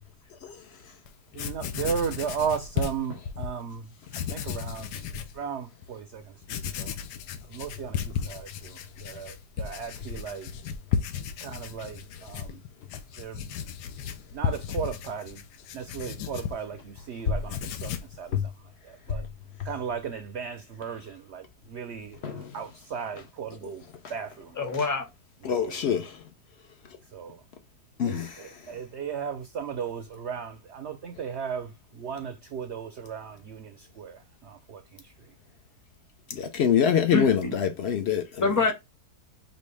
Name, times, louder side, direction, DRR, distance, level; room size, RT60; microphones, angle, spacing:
Writing, 1.1-1.2 1.3-3.5 4.1-5.4 5.8-5.9 6.4-17.1 17.4-18.2, left 8 dB, 90° left, 1.2 m, -34 dB
voice 1, 1.3-5.0 5.3-7.0 7.5-10.5 11.4-12.6 13.2-13.6 14.3-15.4 15.7-19.3 19.6-23.8 24.1-24.6 25.4-25.9 27.1-27.4 28.0-35.3, right 7 dB, 65° right, 0.7 m, -36 dB
voice 2, 24.6-25.0 37.1-37.5 38.4-38.7, left 3 dB, 15° left, 0.7 m, -25 dB
voice 3, 25.4-26.1 28.0-28.4 36.3-38.4, left 8 dB, 60° left, 0.7 m, -25 dB
5.3 x 2.7 x 3.2 m
omnidirectional pair, 1.7 m